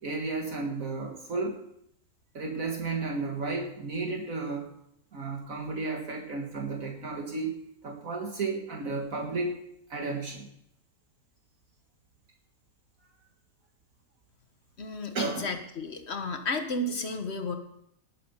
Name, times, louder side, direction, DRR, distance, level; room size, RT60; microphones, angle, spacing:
voice 1, 0.0-1.6 2.3-4.7 5.1-7.6 7.8-9.6 9.9-10.5 15.1-15.5, right 3 dB, 65° right, 1 dB, 2.1 m, -33 dB
voice 2, 14.8-17.6, left 2 dB, 50° left, 5 dB, 1.6 m, -33 dB
20.0 x 7.7 x 5.6 m, 0.75 s
omnidirectional pair, 1.5 m